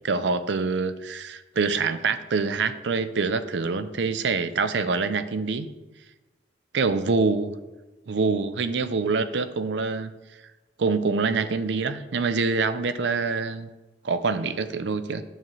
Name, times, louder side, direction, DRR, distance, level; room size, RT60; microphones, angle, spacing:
voice 1, 0.0-5.7 6.7-7.6 8.1-10.1 10.8-13.7 14.0-15.2, right 4 dB, 75° right, 12 dB, 0.5 m, -25 dB
9.1 x 7.1 x 3.1 m, 1.1 s
head